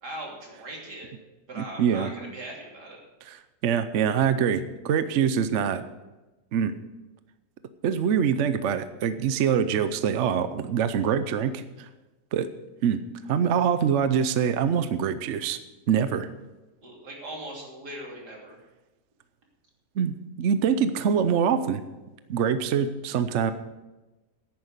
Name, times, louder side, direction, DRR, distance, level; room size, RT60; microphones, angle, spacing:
voice 1, 0.0-1.1 1.5-3.0 16.8-18.6, right 1 dB, 80° right, -2 dB, 3.6 m, -40 dB
voice 2, 1.6-2.1 3.3-3.4 3.6-5.8 6.5-6.7 7.8-11.6 12.3-12.5 12.8-13.0 13.3-15.6 15.9-16.3 20.0-21.8 22.3-23.5, right 7 dB, 60° right, 11 dB, 0.8 m, -24 dB
10.5 x 9.5 x 6.6 m, 1.1 s
omnidirectional pair, 1.7 m